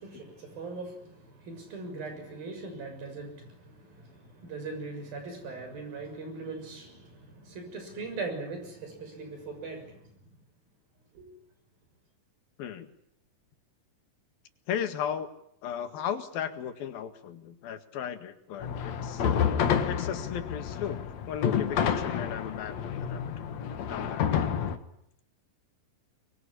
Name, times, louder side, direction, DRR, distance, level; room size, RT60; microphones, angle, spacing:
voice 1, 0.0-10.1 11.1-11.3, right 3 dB, 90° right, 8.5 m, -40 dB
voice 2, 12.6-12.9 14.7-15.3 15.6-19.2 19.8-21.0 21.3-23.5 23.9-24.4, left 9 dB, 85° left, 3.7 m, -36 dB
sound 1, 18.6-24.8, left 8 dB, 55° left, 2.6 m, -29 dB
24.5 x 23.0 x 10.0 m
omnidirectional pair, 4.1 m